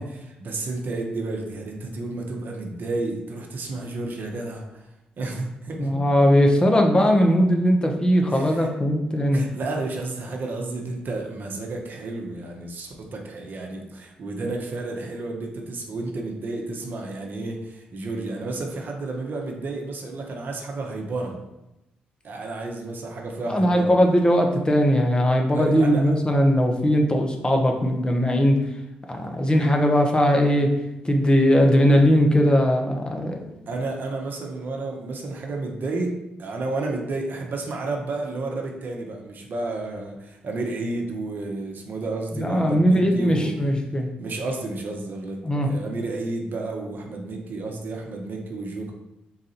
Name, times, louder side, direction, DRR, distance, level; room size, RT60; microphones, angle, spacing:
voice 1, 0.0-4.8 5.2-6.0 8.3-8.7 9.3-21.4 22.2-23.9 25.5-26.1 33.7-43.6 44.2-48.9, right 2 dB, 55° right, 1 dB, 0.8 m, -31 dB
voice 2, 5.8-9.4 23.5-28.6 29.1-30.7 31.0-33.4 42.3-44.1 45.4-45.7, equal, 25° left, 3 dB, 0.8 m, -19 dB
4.0 x 2.6 x 4.2 m, 0.92 s
hypercardioid pair, 45°, 4 cm